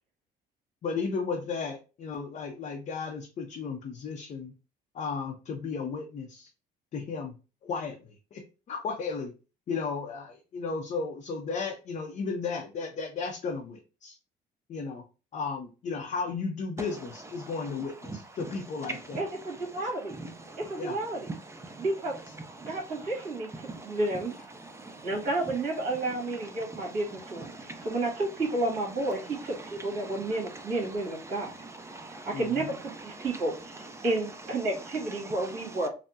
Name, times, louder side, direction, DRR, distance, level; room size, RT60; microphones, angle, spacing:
voice 1, 0.8-4.5 4.9-6.5 6.9-7.3 7.6-8.4 8.7-9.3 9.7-14.2 14.7-15.0 15.3-19.3 20.8-21.0 32.3-32.7, left 5 dB, 45° left, 0.5 m, -34 dB
voice 2, 19.1-20.1 20.6-21.3 21.8-22.1 22.6-24.3 25.0-31.5 32.2-35.9, right 2 dB, 55° right, 1.6 m, -31 dB
voice 3, 20.2-20.6 21.5-21.8 22.6-22.7 23.6-24.0 24.7-25.1 26.9-27.0 27.5-27.9 29.6-29.7 30.0-30.3 31.3-32.3, right 2 dB, 15° right, 0.5 m, -43 dB
3.4 x 2.0 x 2.6 m
cardioid pair, 110°, 17 cm